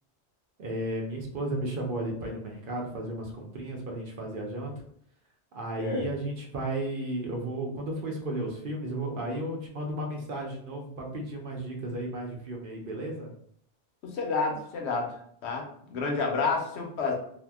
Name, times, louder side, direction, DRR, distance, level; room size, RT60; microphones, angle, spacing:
voice 1, 0.6-4.8 5.5-13.3, right 1 dB, 60° right, 1 dB, 0.8 m, -34 dB
voice 2, 14.1-15.1 15.4-15.6 15.9-17.1, left 4 dB, 85° left, 1 dB, 1.0 m, -29 dB
2.7 x 2.1 x 3.4 m, 0.66 s
omnidirectional pair, 1.1 m